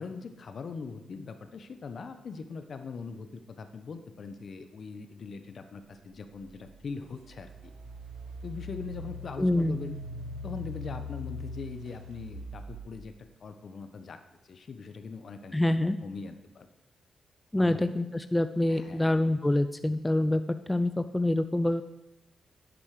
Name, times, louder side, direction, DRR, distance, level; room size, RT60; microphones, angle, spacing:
voice 1, 0.0-7.5 8.4-10.0 10.4-13.1 13.4-14.2 14.5-15.6 16.0-16.7 17.6-17.9 18.7-19.1, left 4 dB, 55° left, 9 dB, 1.2 m, -41 dB
Engine, 7.1-13.1, left 1 dB, 90° right, 1.5 m, -41 dB
voice 2, 9.4-9.8 15.5-16.0 17.5-20.4 20.7-21.8, left 1 dB, 10° left, 10 dB, 0.5 m, -26 dB
10.5 x 8.5 x 6.7 m, 0.97 s
cardioid pair, 90°, 0 cm